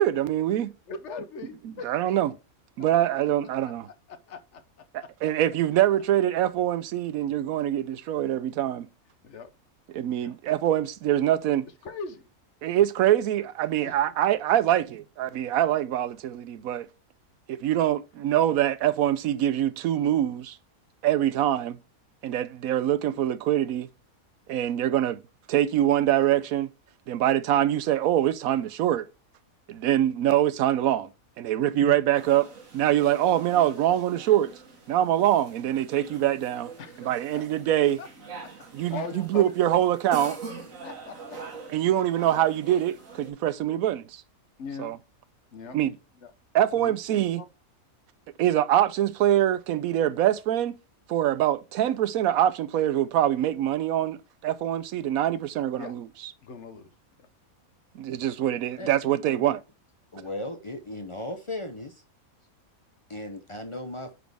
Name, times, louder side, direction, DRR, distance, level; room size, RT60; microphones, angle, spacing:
voice 1, 0.0-0.7 1.8-2.3 2.8-3.9 4.9-8.9 9.9-11.6 12.6-16.9 17.5-20.6 21.0-21.8 22.2-23.9 24.5-25.2 25.5-26.7 27.1-29.0 29.7-31.1 31.4-32.5 32.7-34.5 34.9-36.7 37.0-38.0 38.7-39.0 39.3-40.4 41.7-44.0 44.8-45.0 45.7-45.9 46.5-47.4 48.4-50.8 51.1-54.2 54.4-56.0 58.0-59.6, right 12 dB, 80° right, 1.0 m, -24 dB
voice 2, 0.9-1.9 2.8-3.1 4.1-4.6 5.0-5.1 9.2-9.5 10.2-10.3 11.8-12.3 13.8-14.0 36.8-37.5 38.0-38.1 38.4-39.8 40.8-41.4 42.3-42.5 44.6-44.9 45.5-45.8 46.2-46.3 46.7-47.0 47.4-47.5 55.8-55.9 56.4-56.9 57.2-57.3 60.2-60.3, left 4 dB, 60° left, 1.1 m, -40 dB
sound 1, 32.1-43.3, right 4 dB, 65° right, 2.1 m, -44 dB
voice 3, 58.8-59.5 60.1-62.0 63.1-64.1, left 1 dB, 35° left, 0.5 m, -37 dB
9.3 x 4.1 x 3.4 m
omnidirectional pair, 1.5 m